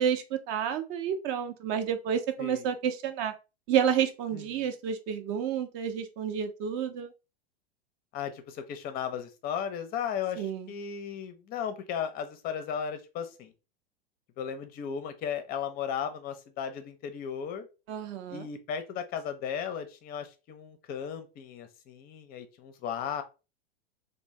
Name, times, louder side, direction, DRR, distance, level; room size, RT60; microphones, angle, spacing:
voice 1, 0.0-3.3 3.7-7.1 10.4-10.7 17.9-18.5, right 8 dB, 40° right, 0.5 m, -30 dB
voice 2, 4.3-4.7 8.1-13.5 14.4-17.7 18.3-23.2, left 8 dB, 30° left, 0.5 m, -35 dB
2.5 x 2.0 x 3.0 m
hypercardioid pair, 115°, 33 cm